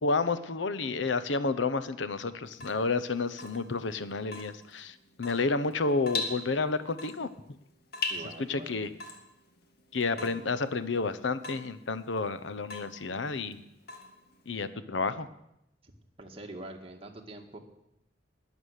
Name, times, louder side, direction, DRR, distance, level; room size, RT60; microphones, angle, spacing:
voice 1, 0.0-7.3 8.4-8.9 9.9-13.6 14.5-15.3, left 3 dB, 90° left, 13 dB, 0.8 m, -30 dB
Water tap faucet / Drip, 2.5-14.6, left 4 dB, 60° left, 1.8 m, -42 dB
voice 2, 8.1-8.9 10.2-10.3 15.8-15.9 16.2-17.6, right 2 dB, 30° right, 2 dB, 1.8 m, -44 dB
20.5 x 7.2 x 6.5 m, 0.83 s
head